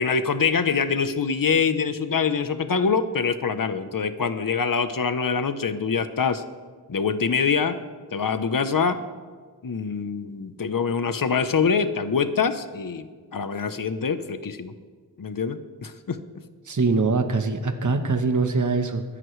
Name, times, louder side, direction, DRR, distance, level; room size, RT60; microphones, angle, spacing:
voice 1, 0.0-6.4 6.9-7.8 8.1-9.0 9.6-14.7 15.2-16.2, left 5 dB, 55° left, 10 dB, 0.9 m, -24 dB
voice 2, 16.7-19.0, right 4 dB, 45° right, 6 dB, 1.1 m, -23 dB
22.5 x 11.0 x 3.2 m, 1.5 s
wide cardioid pair, 55°, 41 cm